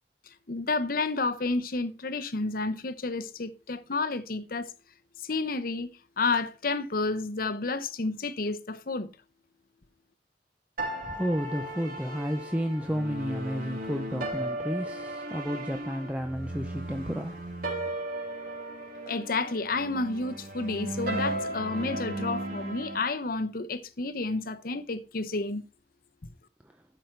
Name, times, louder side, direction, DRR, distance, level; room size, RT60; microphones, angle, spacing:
voice 1, 0.5-4.7 5.2-5.9 6.2-9.1 19.1-25.6, left 3 dB, 55° left, 0.9 m, -30 dB
sound 1, 10.8-23.0, right 1 dB, 55° right, 3.0 m, -36 dB
voice 2, 11.0-17.4, equal, 10° right, 0.7 m, -32 dB
12.0 x 5.3 x 4.5 m
head